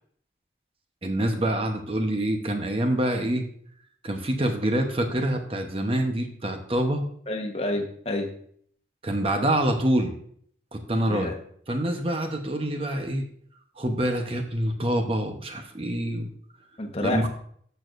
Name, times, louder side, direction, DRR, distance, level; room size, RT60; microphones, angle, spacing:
voice 1, 1.0-3.5 4.0-7.0 9.0-10.2 10.7-11.3 11.7-13.2 13.8-16.3 17.0-17.3, right 1 dB, 30° right, 4 dB, 0.9 m, -26 dB
voice 2, 7.3-8.3 11.1-11.3 16.8-17.3, left 1 dB, 35° left, 4 dB, 1.1 m, -29 dB
13.5 x 6.3 x 2.5 m, 0.62 s
head